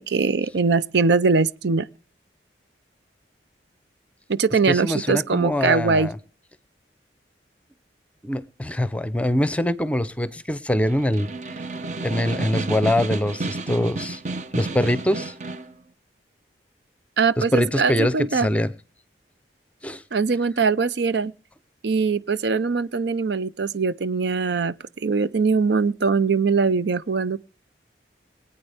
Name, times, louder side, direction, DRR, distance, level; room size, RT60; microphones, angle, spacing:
voice 1, 0.0-1.9 4.3-6.1 17.2-18.5 20.1-21.3 21.8-27.4, right 4 dB, 70° right, 0.6 m, -22 dB
voice 2, 4.7-6.2 8.2-11.3 12.0-14.2 14.5-15.3 17.4-18.7 19.8-20.0, left 1 dB, 5° left, 0.7 m, -23 dB
Snare drum, 10.8-15.7, right 3 dB, 40° right, 0.9 m, -31 dB
23.5 x 8.9 x 3.5 m
head